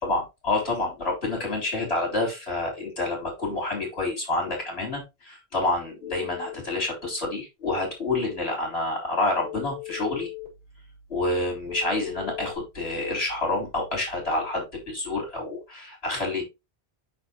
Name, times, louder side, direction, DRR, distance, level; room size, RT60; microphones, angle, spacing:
voice 1, 0.0-10.3 11.1-16.4, left 2 dB, 70° left, 0 dB, 4.1 m, -28 dB
Telephone, 6.0-6.5 9.5-10.5 11.7-12.6, left 20 dB, 45° right, 4.0 m, -38 dB
6.5 x 6.4 x 3.0 m, 0.23 s
omnidirectional pair, 1.1 m